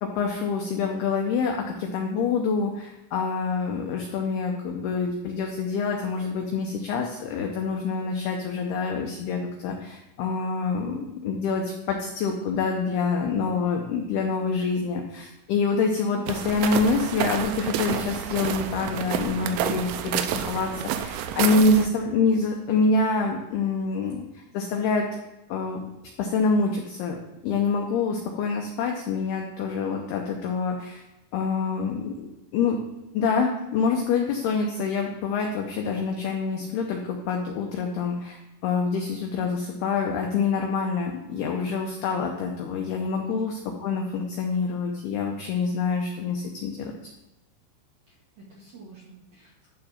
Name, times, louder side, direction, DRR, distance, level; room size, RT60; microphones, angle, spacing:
voice 1, 0.0-25.1 25.5-25.8 26.2-27.2 27.4-31.0 31.3-32.8 33.1-43.5 43.8-46.9, left 4 dB, 85° left, 2 dB, 2.2 m, -26 dB
voice 2, 16.1-16.6 43.3-43.5 48.1-49.7, right 2 dB, 60° right, -6 dB, 1.9 m, -43 dB
sound 1, 16.3-21.9, right 9 dB, 85° right, 3.0 m, -29 dB
11.5 x 3.9 x 5.7 m, 0.96 s
omnidirectional pair, 5.6 m